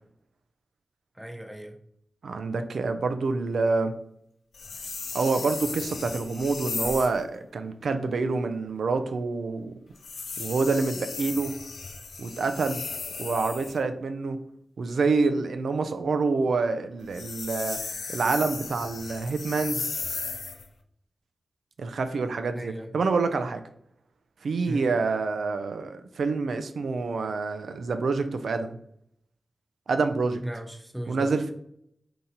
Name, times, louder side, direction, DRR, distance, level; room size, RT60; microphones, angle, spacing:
voice 1, 1.1-1.8 22.5-22.9 24.7-24.8 30.4-31.5, equal, 10° right, 4 dB, 0.8 m, -37 dB
voice 2, 2.2-3.9 5.1-9.7 10.4-11.5 12.2-12.8 13.2-14.4 14.8-17.8 18.1-19.9 21.8-23.6 24.4-28.8 29.9-30.4 31.1-31.4, right 4 dB, 85° right, 8 dB, 0.4 m, -27 dB
sound 1, 4.5-7.2 10.0-13.8 17.0-20.7, left 4 dB, 85° left, 0.5 m, -35 dB
3.8 x 2.8 x 4.1 m, 0.71 s
cardioid pair, 45°, 0 cm